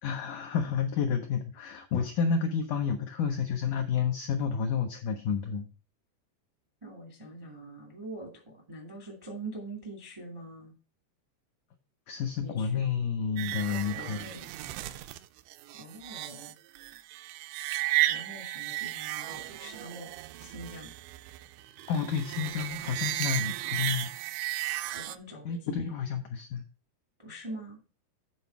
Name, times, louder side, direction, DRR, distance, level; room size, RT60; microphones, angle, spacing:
voice 1, 0.0-5.7 12.1-14.3 21.9-24.1 25.5-26.6, left 6 dB, 85° left, 4 dB, 1.8 m, -30 dB
voice 2, 6.8-10.7 12.4-12.8 13.6-14.5 15.8-16.5 18.0-20.1 20.4-20.9 24.9-25.9 27.2-27.8, right 1 dB, 30° right, 0 dB, 0.5 m, -44 dB
sound 1, 13.4-25.2, right 17 dB, 85° right, 2.7 m, -34 dB
9.3 x 4.1 x 5.7 m, 0.34 s
omnidirectional pair, 4.8 m